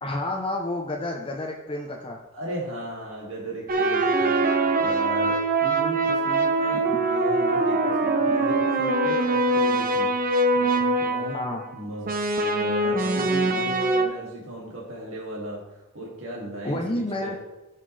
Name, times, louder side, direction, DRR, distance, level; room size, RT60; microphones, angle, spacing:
voice 1, 0.0-2.2 11.3-11.6 16.6-17.4, left 1 dB, 25° left, 0 dB, 0.7 m, -29 dB
voice 2, 2.3-11.4 11.7-17.3, right 1 dB, 65° right, -6 dB, 2.4 m, -36 dB
sound 1, 3.7-11.6 12.1-14.0, right 2 dB, 40° right, 0.8 m, -23 dB
15.0 x 5.8 x 3.3 m, 1.0 s
head